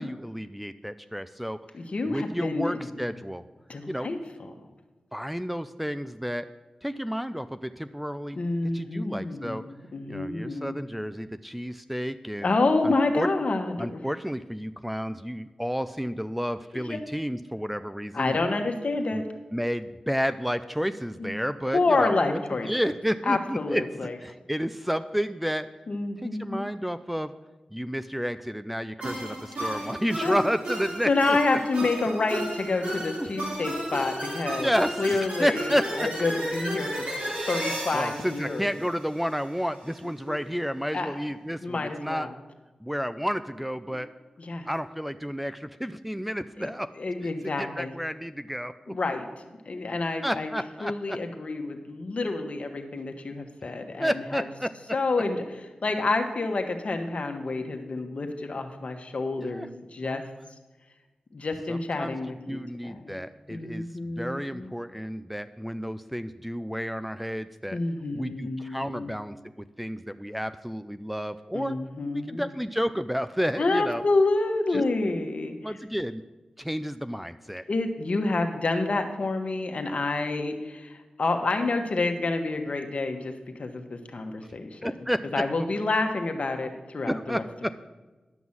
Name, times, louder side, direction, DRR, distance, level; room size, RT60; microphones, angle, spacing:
voice 1, 0.0-1.6 2.1-3.4 3.9-4.1 5.1-6.5 6.8-8.4 8.7-9.6 10.1-12.5 12.8-13.3 13.8-18.4 19.1-19.2 19.5-22.4 22.7-23.8 24.2-25.7 26.2-27.3 27.7-31.6 34.6-36.1 37.9-42.3 42.8-44.1 44.7-46.9 47.6-48.9 50.2-51.2 54.0-54.7 59.4-59.7 60.0-60.2 61.7-62.2 62.5-63.9 64.2-67.8 68.1-71.8 72.3-74.0 74.7-74.8 75.6-76.2 76.6-77.6 84.8-85.4 87.0-87.7, equal, 5° right, 11 dB, 0.5 m, -31 dB
voice 2, 1.7-2.9 3.7-4.7 8.3-10.8 12.4-14.0 16.7-17.0 18.1-19.2 21.2-21.3 21.7-22.9 23.2-24.2 25.9-26.7 29.6-29.9 30.2-30.4 31.0-34.7 35.0-37.1 37.4-38.8 40.3-40.4 40.9-41.1 41.6-42.3 43.9-44.0 44.4-44.7 46.6-47.9 48.9-49.3 49.6-50.5 50.8-54.4 54.9-60.2 61.3-63.2 63.5-64.7 67.7-69.1 71.5-72.4 73.6-75.8 77.7-85.0 85.3-87.4, left 3 dB, 65° left, 5 dB, 1.4 m, -28 dB
sound 1, 29.0-39.4, right 1 dB, 80° right, 3.4 m, -33 dB
11.0 x 6.1 x 7.3 m, 1.2 s
cardioid pair, 55°, 2 cm